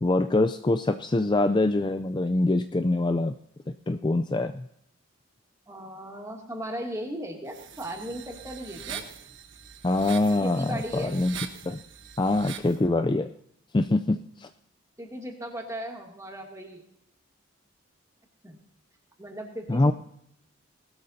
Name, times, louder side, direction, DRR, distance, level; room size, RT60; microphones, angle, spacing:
voice 1, 0.0-3.3 3.9-4.7 9.8-11.3 11.6-11.8 12.2-13.3 13.7-14.5 19.7-19.9, left 2 dB, 20° left, 8 dB, 0.4 m, -24 dB
voice 2, 5.7-9.0 10.4-11.2 15.0-16.8 18.4-18.6 19.2-19.9, right 1 dB, 15° right, 1 dB, 2.4 m, -37 dB
sound 1, 7.5-12.8, right 7 dB, 65° right, 1.2 m, -42 dB
19.5 x 13.0 x 2.7 m, 0.73 s
head